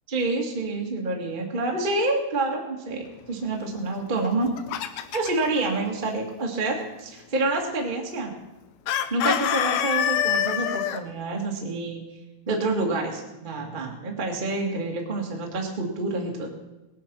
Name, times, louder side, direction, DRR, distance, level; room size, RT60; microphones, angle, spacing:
voice 1, 0.1-4.5 5.1-8.3 9.1-12.0 12.5-16.5, right 2 dB, 35° right, 0 dB, 0.7 m, -28 dB
Chicken rooster, 4.2-5.5 8.9-11.0, left 10 dB, 90° left, 2.9 m, -25 dB
20.0 x 9.5 x 6.1 m, 1.0 s
omnidirectional pair, 4.5 m